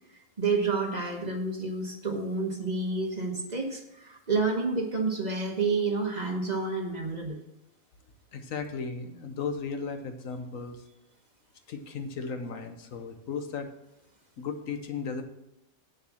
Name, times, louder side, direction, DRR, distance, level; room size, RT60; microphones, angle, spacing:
voice 1, 0.4-7.4, right 3 dB, 30° right, 2 dB, 1.2 m, -29 dB
voice 2, 8.3-10.8 11.7-13.7 14.4-15.2, left 5 dB, 70° left, 7 dB, 1.3 m, -35 dB
8.2 x 7.2 x 6.2 m, 0.87 s
omnidirectional pair, 1.4 m